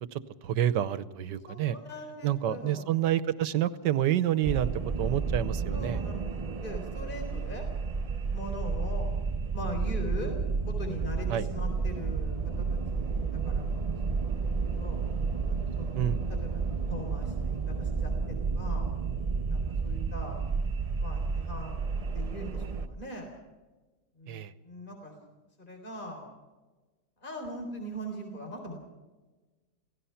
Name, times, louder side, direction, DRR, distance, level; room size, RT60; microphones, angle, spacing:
voice 1, 0.1-1.8 2.2-4.7 5.0-6.0 11.3-11.4 15.9-16.2 24.3-24.5, right 11 dB, 85° right, 15 dB, 1.5 m, -28 dB
voice 2, 1.5-3.0 5.7-7.6 8.3-9.1 9.5-10.4 10.7-15.0 15.4-16.0 16.3-16.6 16.9-18.9 19.5-20.5 21.0-23.4 24.1-25.1 25.6-26.3 27.2-28.8, equal, 30° left, 3 dB, 4.1 m, -41 dB
sound 1, 4.4-22.9, right 4 dB, 30° right, 0.6 m, -31 dB
27.5 x 17.5 x 5.8 m, 1.2 s
omnidirectional pair, 1.8 m